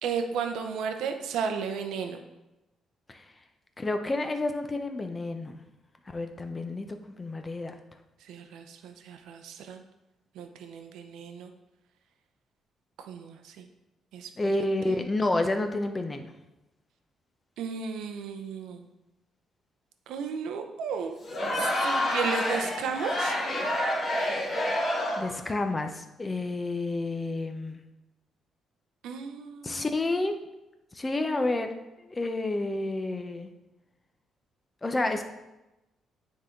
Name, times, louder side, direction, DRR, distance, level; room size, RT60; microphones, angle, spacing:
voice 1, 0.0-2.2 8.2-9.8 10.3-11.5 13.0-13.7 14.1-14.3 14.9-15.0 17.6-18.9 20.1-21.2 21.6-23.3 29.0-29.8, right 6 dB, 85° right, 6 dB, 0.7 m, -34 dB
voice 2, 3.8-5.6 6.1-6.9 7.2-7.7 14.4-16.3 25.2-27.8 29.6-30.4 30.9-31.7 32.1-33.5 34.8-35.2, left 2 dB, 25° left, 6 dB, 0.8 m, -29 dB
Crowd, 21.2-25.4, left 1 dB, 55° left, 1.6 m, -28 dB
9.4 x 3.7 x 3.8 m, 0.98 s
cardioid pair, 90°, 0 cm